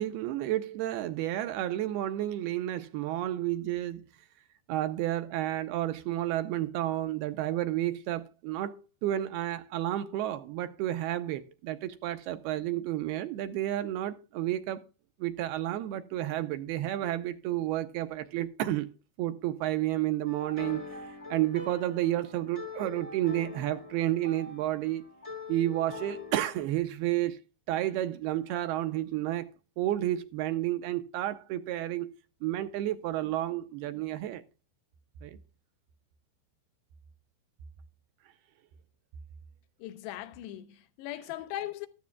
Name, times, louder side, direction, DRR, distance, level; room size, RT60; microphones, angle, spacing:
voice 1, 0.0-4.0 4.7-14.8 15.2-18.9 19.2-21.0 21.3-25.1 25.5-27.4 27.7-29.5 29.8-32.1 32.4-34.4 35.2-35.4, right 13 dB, 80° right, 2.5 m, -31 dB
sound 1, 20.3-26.4, left 3 dB, 35° left, 0.5 m, -44 dB
voice 2, 39.8-41.9, left 13 dB, 80° left, 2.8 m, -39 dB
14.5 x 13.5 x 2.4 m
omnidirectional pair, 5.1 m